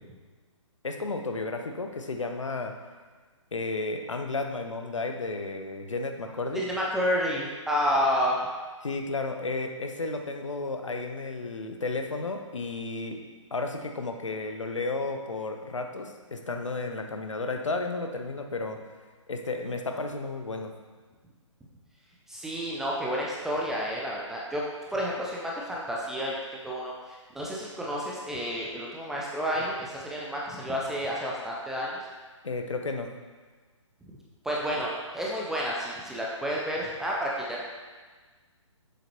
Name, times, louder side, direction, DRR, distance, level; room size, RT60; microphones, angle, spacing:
voice 1, 0.8-2.7 3.5-6.6 8.8-13.2 13.5-18.8 19.3-20.7 32.4-33.1, left 3 dB, 70° left, 4 dB, 0.9 m, -33 dB
voice 2, 6.5-8.4 22.3-24.6 24.9-31.9 34.4-37.7, equal, 5° right, -4 dB, 0.3 m, -30 dB
7.5 x 6.9 x 3.0 m, 1.4 s
figure-of-eight pair, 130°, 17 cm